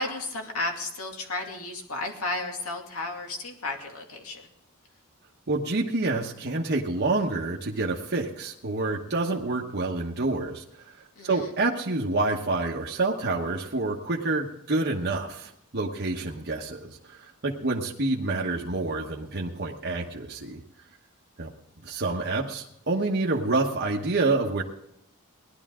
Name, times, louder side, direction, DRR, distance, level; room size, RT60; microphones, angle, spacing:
voice 1, 0.0-4.4 11.2-11.5, left 2 dB, 75° left, 2 dB, 2.4 m, -33 dB
voice 2, 5.5-10.9 11.2-20.6 21.4-21.5 21.8-24.6, right 2 dB, 50° right, -1 dB, 1.1 m, -28 dB
18.0 x 11.5 x 3.7 m, 0.77 s
head